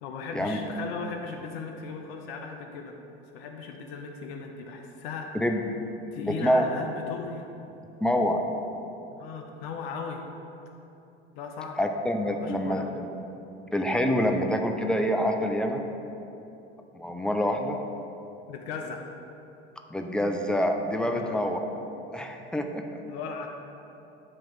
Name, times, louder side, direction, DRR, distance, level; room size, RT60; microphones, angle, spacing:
voice 1, 0.0-3.0 3.3-5.4 6.1-7.5 9.1-10.2 11.3-11.8 12.3-12.8 18.5-19.1 21.0-21.4 23.1-23.5, left 5 dB, 70° left, 2 dB, 0.6 m, -37 dB
voice 2, 6.2-6.7 8.0-8.4 11.8-13.1 13.7-15.8 16.9-17.8 19.9-21.6 22.1-22.8, equal, 5° left, 4 dB, 0.4 m, -26 dB
7.3 x 2.9 x 4.6 m, 3.0 s
hypercardioid pair, 80°, 31 cm